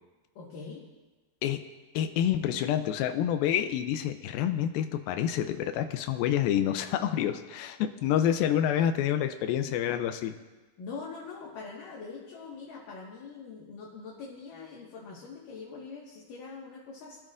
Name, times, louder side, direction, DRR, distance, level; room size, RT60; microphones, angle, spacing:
voice 1, 0.4-0.9 10.8-17.2, left 4 dB, 65° left, -4 dB, 3.2 m, -43 dB
voice 2, 2.0-10.3, left 10 dB, 90° left, 8 dB, 2.4 m, -28 dB
24.0 x 12.0 x 2.5 m, 1.2 s
omnidirectional pair, 4.2 m